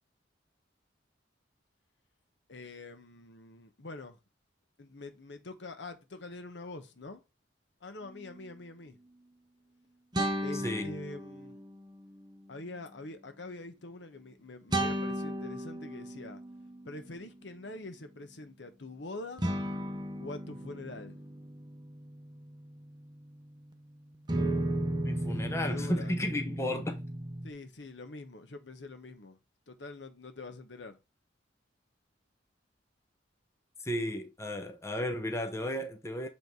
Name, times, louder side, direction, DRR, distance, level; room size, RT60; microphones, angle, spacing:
voice 1, 2.5-4.2 4.8-7.2 7.8-9.0 10.4-11.6 12.5-16.4 16.8-19.5 20.2-21.2 25.2-26.2 27.4-29.4 29.7-31.0, left 2 dB, 65° left, 1.1 m, -45 dB
sound 1, 8.2-8.3 10.1-11.8 14.7-17.1 19.4-23.7 24.3-27.5, right 1 dB, 25° right, 0.9 m, -35 dB
voice 2, 10.5-10.9 25.0-27.0 33.8-36.3, left 1 dB, 15° left, 0.7 m, -34 dB
8.0 x 3.4 x 4.6 m
head